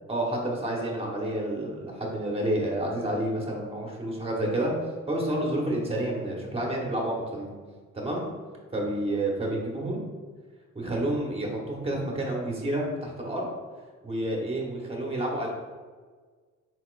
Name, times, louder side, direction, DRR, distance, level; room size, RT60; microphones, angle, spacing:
voice 1, 0.1-4.7 5.1-7.5 7.9-8.3 8.7-10.0 10.7-13.4 14.0-15.5, right 1 dB, 20° right, -1 dB, 1.1 m, -29 dB
4.3 x 4.1 x 2.5 m, 1.5 s
cardioid pair, 90°, 30 cm